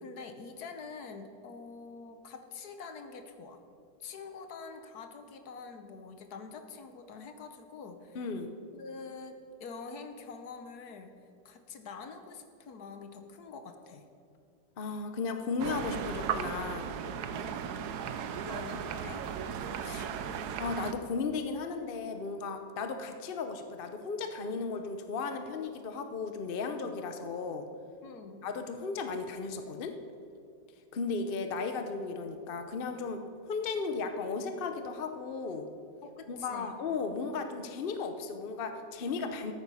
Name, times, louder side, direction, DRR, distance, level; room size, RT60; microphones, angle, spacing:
voice 1, 0.0-3.6 4.0-8.2 8.7-11.2 11.4-14.1 17.3-17.6 18.5-19.2 28.0-28.4 36.0-36.8, left 4 dB, 65° left, 7 dB, 1.3 m, -46 dB
voice 2, 8.1-8.5 14.8-16.9 19.8-20.1 20.6-27.7 28.4-29.9 30.9-35.7 36.3-39.5, left 4 dB, 45° left, 7 dB, 0.7 m, -35 dB
sound 1, 15.6-20.9, right 7 dB, 70° right, 1.1 m, -36 dB
13.0 x 9.0 x 5.5 m, 2.4 s
omnidirectional pair, 1.9 m